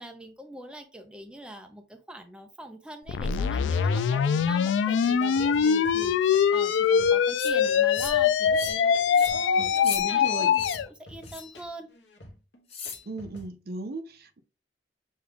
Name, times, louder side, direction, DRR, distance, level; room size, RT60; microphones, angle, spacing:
voice 1, 0.0-11.9, right 1 dB, 5° right, 0.5 m, -43 dB
sound 1, 3.1-10.9, left 7 dB, 85° left, 0.3 m, -23 dB
sound 2, 3.2-13.5, left 1 dB, 70° left, 0.9 m, -49 dB
sound 3, 7.4-7.5 7.9-8.2 8.6-8.8 9.1-9.3 9.7-10.0 10.5-10.8 11.2-11.6 12.7-13.0, left 6 dB, 35° left, 0.8 m, -37 dB
voice 2, 9.6-10.5 13.1-14.4, right 2 dB, 55° right, 0.7 m, -36 dB
6.4 x 2.3 x 3.4 m
head